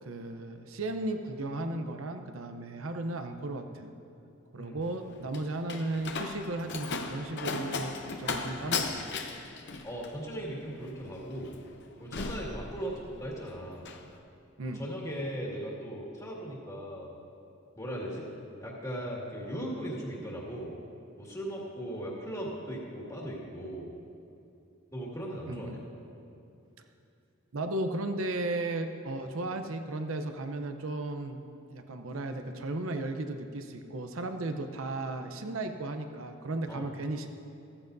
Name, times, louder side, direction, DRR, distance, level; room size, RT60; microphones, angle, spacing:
voice 1, 0.0-3.9 4.5-9.0 14.6-14.8 25.5-25.8 27.5-31.4 31.7-37.3, right 2 dB, 80° right, 7 dB, 0.7 m, -35 dB
Slam, 4.8-13.3 13.6-14.1, left 4 dB, 60° left, 0.8 m, -37 dB
voice 2, 9.8-11.6 12.0-13.9 14.7-17.1 17.8-18.3 18.6-20.7 21.2-23.9 24.9-25.8 36.7-36.9, equal, 15° left, -4 dB, 2.0 m, -38 dB
15.0 x 14.5 x 2.7 m, 2.7 s
head